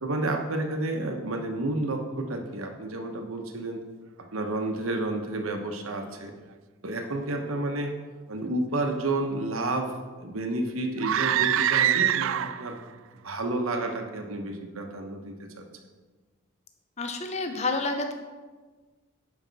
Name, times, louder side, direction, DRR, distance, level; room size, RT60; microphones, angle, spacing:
voice 1, 0.0-3.8 4.3-6.3 6.8-7.9 8.3-12.8 13.2-15.6, right 2 dB, 85° right, 4 dB, 1.1 m, -30 dB
sound 1, 11.0-12.8, right 10 dB, 70° right, 0.3 m, -24 dB
voice 2, 17.0-18.1, left 3 dB, 30° left, 5 dB, 0.6 m, -29 dB
10.5 x 5.2 x 4.1 m, 1.3 s
head